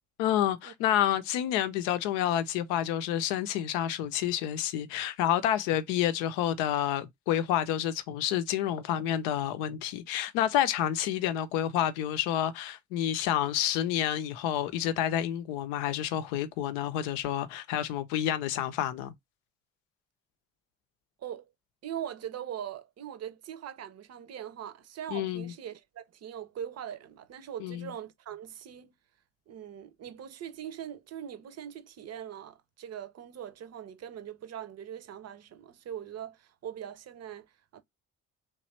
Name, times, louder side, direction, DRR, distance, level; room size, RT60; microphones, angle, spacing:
voice 1, 0.2-19.1 25.1-25.5 27.6-27.9, left 11 dB, 75° left, 0.6 m, -29 dB
voice 2, 21.8-28.9 29.5-37.8, right 9 dB, 45° right, 0.7 m, -41 dB
3.1 x 2.4 x 4.2 m
hypercardioid pair, 45°, 37 cm